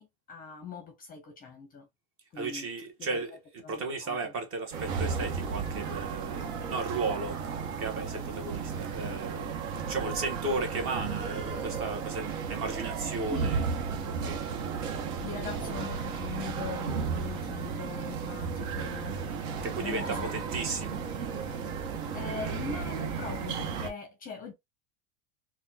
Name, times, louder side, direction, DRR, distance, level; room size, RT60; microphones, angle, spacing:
voice 1, 0.0-1.9 2.3-2.7 3.0-3.3 3.6-4.3 13.3-13.6 15.2-19.2 19.6-20.3 22.1-24.5, left 5 dB, 20° left, 0.6 m, -41 dB
voice 2, 2.4-3.4 3.7-9.5 9.9-13.6 14.1-14.4 19.6-21.0, right 3 dB, 30° right, 0.9 m, -35 dB
sound 1, 4.7-23.9, right 5 dB, 70° right, 1.0 m, -34 dB
4.0 x 2.3 x 2.7 m
supercardioid pair, 145°, 42 cm